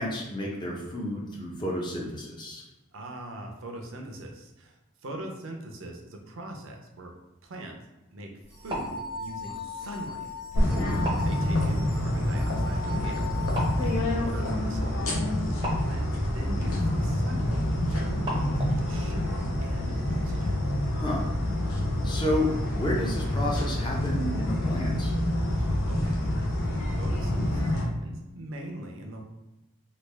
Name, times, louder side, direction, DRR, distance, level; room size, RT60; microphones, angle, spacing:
voice 1, 0.0-2.6 10.6-11.0 20.9-21.3 22.0-25.1, left 1 dB, 20° left, -2 dB, 0.5 m, -31 dB
voice 2, 2.9-7.1 7.4-7.8 8.1-8.3 8.6-10.8 11.2-13.3 13.8-15.1 15.5-20.6 25.5-26.2 27.0-29.2, right 1 dB, 60° right, 2 dB, 0.5 m, -41 dB
sound 1, 8.4-19.0, equal, 20° right, 0.6 m, -41 dB
sound 2, 8.5-14.4, left 3 dB, 45° left, 1.0 m, -39 dB
sound 3, 10.5-27.8, left 1 dB, 70° left, 0.7 m, -27 dB
3.2 x 2.3 x 3.3 m, 1.0 s
head